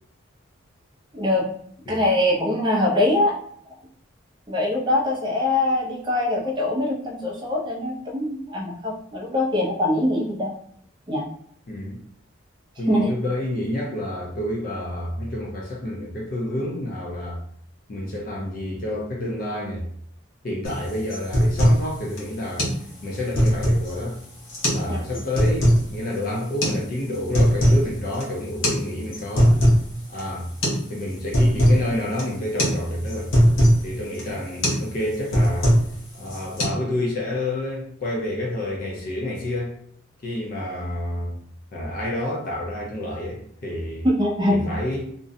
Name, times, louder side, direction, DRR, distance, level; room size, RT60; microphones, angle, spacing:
voice 1, 1.1-1.5 1.9-3.3 4.5-10.5 11.1-11.3 12.9-13.1 24.9-25.0 44.0-44.7, left 1 dB, 20° right, -2 dB, 0.4 m, -23 dB
voice 2, 11.7-12.0 12.8-17.4 17.9-19.9 20.4-22.7 23.0-24.2 24.7-29.6 30.1-30.5 30.9-33.3 33.8-35.7 36.1-39.7 40.2-41.4 41.7-44.1 44.5-45.1, left 1 dB, 45° left, -2 dB, 0.5 m, -29 dB
sound 1, 20.6-20.8 21.1-21.8 22.2-22.3 22.6-22.8 23.1-23.9 24.5-24.9 25.1-25.8 26.6-26.8 27.1-27.9 28.1-28.2 28.6-28.8 29.1-29.9 30.2-30.3 30.6-30.8 31.1-31.8 32.2-32.3 32.6-32.8 33.1-33.8 34.2-34.3 34.6-34.9 35.1-35.9 36.3-36.6, equal, 70° left, 0.7 m, -19 dB
2.5 x 2.1 x 2.6 m, 0.67 s
head